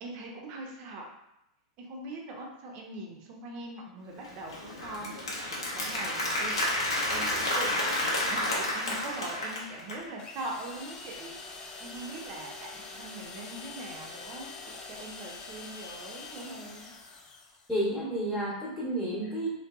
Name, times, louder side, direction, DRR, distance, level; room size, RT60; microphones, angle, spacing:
voice 1, 0.0-1.0 1.8-6.8 7.1-11.3 11.8-16.9, right 2 dB, 45° right, 0 dB, 0.5 m, -42 dB
Applause, 4.2-10.0, left 1 dB, 80° left, 0.6 m, -30 dB
sound 1, 10.2-17.8, left 3 dB, 30° left, 0.4 m, -45 dB
voice 2, 17.7-19.5, right 1 dB, 5° left, -8 dB, 0.9 m, -31 dB
2.6 x 2.1 x 2.4 m, 0.87 s
hypercardioid pair, 100°, 3 cm